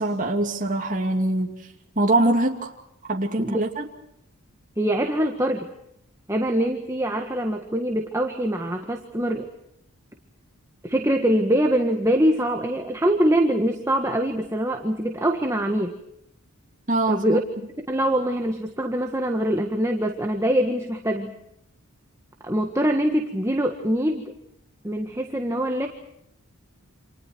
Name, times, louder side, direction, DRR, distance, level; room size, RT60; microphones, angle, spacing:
voice 1, 0.0-1.7 2.0-2.7 3.1-3.8 16.9-17.4, right 2 dB, 35° right, 1 dB, 2.8 m, -23 dB
voice 2, 4.8-5.7 6.3-9.5 10.8-16.0 17.1-17.4 17.9-21.3 22.4-24.3 24.8-25.9, right 1 dB, 15° right, 3 dB, 1.6 m, -23 dB
29.5 x 28.0 x 4.6 m, 0.79 s
head